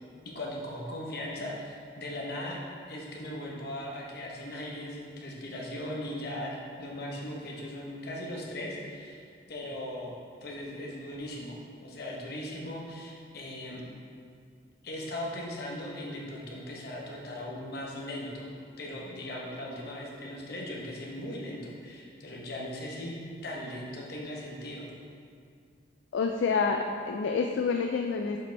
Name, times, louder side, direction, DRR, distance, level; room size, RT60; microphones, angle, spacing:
voice 1, 0.2-9.2 9.5-10.1 10.4-13.8 14.8-18.5 18.8-23.2 23.4-24.9, left 1 dB, 55° left, -3 dB, 1.1 m, -38 dB
voice 2, 26.1-28.4, left 5 dB, 70° left, 4 dB, 0.3 m, -28 dB
7.2 x 5.1 x 3.4 m, 2.2 s
head